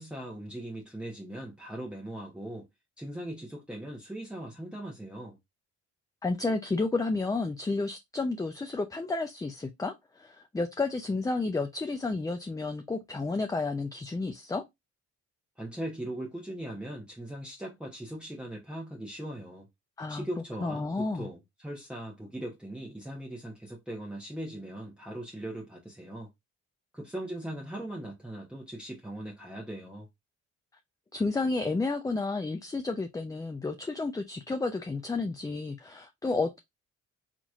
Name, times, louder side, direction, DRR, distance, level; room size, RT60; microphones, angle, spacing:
voice 1, 0.0-2.7 3.0-5.4 15.6-19.7 20.1-26.3 26.9-30.1, right 1 dB, 5° right, 1.0 m, -39 dB
voice 2, 6.2-14.6 20.0-20.3 20.6-21.3 31.1-36.6, left 3 dB, 10° left, 0.4 m, -31 dB
4.1 x 3.0 x 2.4 m
cardioid pair, 90°, 30 cm